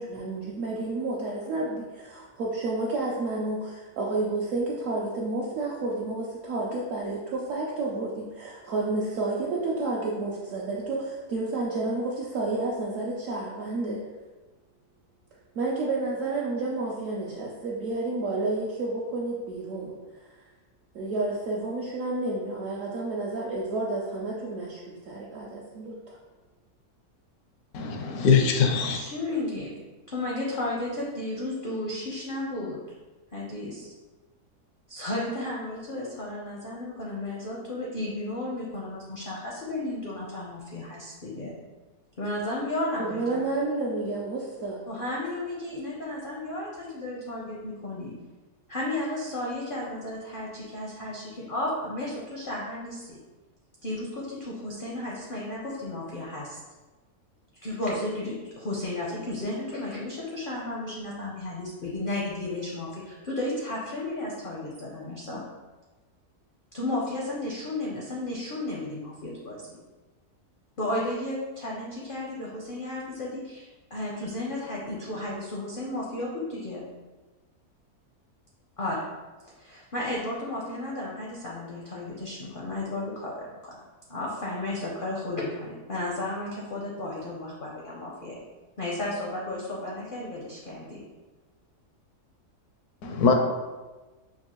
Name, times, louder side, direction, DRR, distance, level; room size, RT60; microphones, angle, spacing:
voice 1, 0.0-14.0 15.5-20.0 20.9-26.2 43.0-44.8, right 2 dB, 65° right, -4 dB, 0.8 m, -30 dB
voice 2, 27.7-29.0 93.0-93.3, left 5 dB, 80° left, 4 dB, 1.1 m, -22 dB
voice 3, 28.9-29.7 30.1-32.8 33.3-33.9 34.9-41.6 42.2-43.4 44.9-48.1 48.7-53.2 53.8-56.6 57.6-65.4 66.7-69.8 70.8-76.8 78.8-79.0 79.6-83.8 84.1-88.4 88.8-91.0, left 1 dB, 60° left, -4 dB, 0.5 m, -33 dB
5.2 x 2.4 x 2.9 m, 1.2 s
omnidirectional pair, 1.7 m